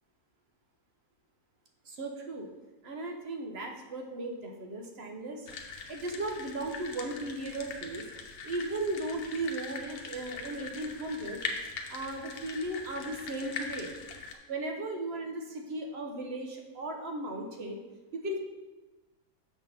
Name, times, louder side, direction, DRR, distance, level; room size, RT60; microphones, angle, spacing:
voice 1, 1.8-2.5 2.8-5.5 5.9-8.1 8.4-11.4 11.9-13.9 14.5-17.8 18.1-18.4, right 2 dB, 50° right, 2 dB, 0.9 m, -36 dB
sound 1, 5.5-14.3, left 4 dB, 70° left, 1.2 m, -41 dB
7.1 x 3.6 x 5.7 m, 1.2 s
omnidirectional pair, 1.7 m